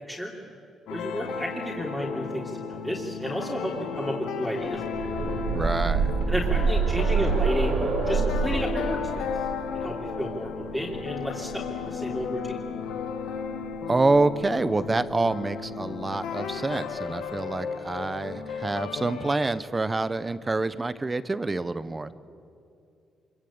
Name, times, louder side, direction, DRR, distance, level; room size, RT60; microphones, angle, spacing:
sound 1, 0.9-19.4, left 6 dB, 85° left, 1.8 m, -34 dB
voice 1, 0.9-5.1 6.3-9.0 9.7-12.6, equal, ahead, -4 dB, 3.4 m, -32 dB
sound 2, 4.7-12.5 13.7-13.8 14.1-14.2, right 4 dB, 70° right, 5.7 m, -27 dB
voice 2, 5.5-6.1 13.9-22.1, right 3 dB, 20° right, 14 dB, 1.0 m, -27 dB
25.5 x 23.0 x 8.7 m, 2.5 s
cardioid pair, 90°, 0 cm